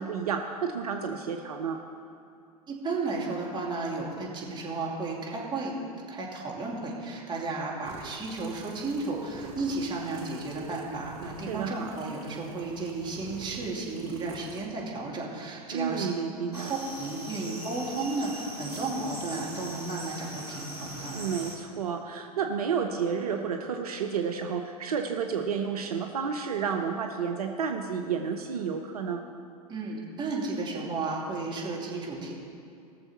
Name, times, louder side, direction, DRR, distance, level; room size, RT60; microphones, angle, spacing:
voice 1, 0.0-1.8 11.5-11.9 15.7-16.7 21.1-29.2, right 6 dB, 70° right, 4 dB, 0.7 m, -31 dB
voice 2, 2.7-5.8 6.1-16.1 16.6-21.2 29.7-32.3, right 3 dB, 25° right, -3 dB, 2.6 m, -33 dB
sound 1, 7.8-14.7, right 4 dB, 55° right, 1.4 m, -47 dB
sound 2, 16.5-21.6, right 1 dB, 90° right, 1.9 m, -41 dB
19.0 x 6.9 x 4.3 m, 2.6 s
figure-of-eight pair, 90°, 20 cm